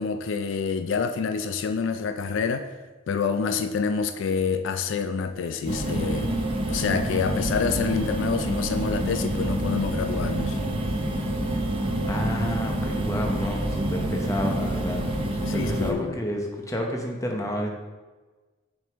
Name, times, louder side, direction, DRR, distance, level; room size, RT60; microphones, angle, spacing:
voice 1, 0.0-2.7 3.1-6.3 6.7-10.6 15.5-16.2, left 5 dB, 75° left, 9 dB, 0.4 m, -27 dB
sound 1, 5.6-15.9, right 1 dB, 30° right, 0.6 m, -27 dB
voice 2, 12.0-15.0 15.5-17.7, equal, 15° left, 1 dB, 0.8 m, -30 dB
6.1 x 5.2 x 3.5 m, 1.3 s
head